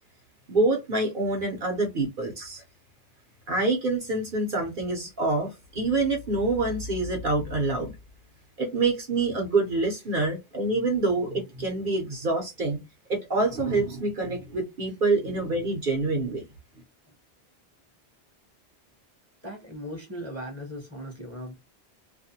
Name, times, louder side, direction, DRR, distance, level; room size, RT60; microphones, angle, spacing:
voice 1, 0.5-2.6 3.5-7.9 8.6-12.8 13.1-16.4, right 3 dB, 55° right, 0.8 m, -26 dB
voice 2, 19.4-21.6, equal, 15° left, 0.7 m, -38 dB
2.4 x 2.1 x 2.6 m
omnidirectional pair, 1.2 m